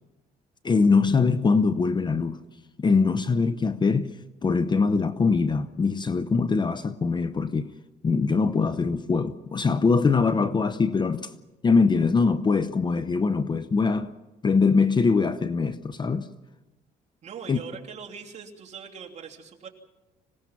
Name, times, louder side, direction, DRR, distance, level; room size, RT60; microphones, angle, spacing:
voice 1, 0.6-2.4 2.8-4.1 4.4-7.7 8.0-11.3 11.6-14.1 14.4-16.3 17.5-17.6, left 4 dB, 25° left, 0.8 m, -22 dB
voice 2, 17.2-19.7, right 6 dB, 40° right, 3.0 m, -41 dB
26.0 x 18.0 x 5.9 m
cardioid pair, 110°, 17 cm